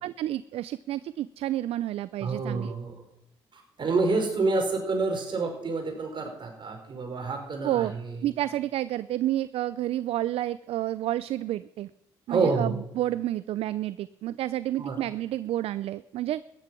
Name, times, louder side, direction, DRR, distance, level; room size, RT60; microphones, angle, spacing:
voice 1, 0.0-2.7 7.6-7.9 8.2-11.9 12.3-16.4, right 13 dB, 70° right, 17 dB, 0.4 m, -30 dB
voice 2, 2.2-2.9 3.5-8.3 12.3-12.8 14.8-15.0, right 3 dB, 50° right, 3 dB, 4.8 m, -28 dB
14.0 x 11.0 x 6.1 m, 0.83 s
supercardioid pair, 55°, 10 cm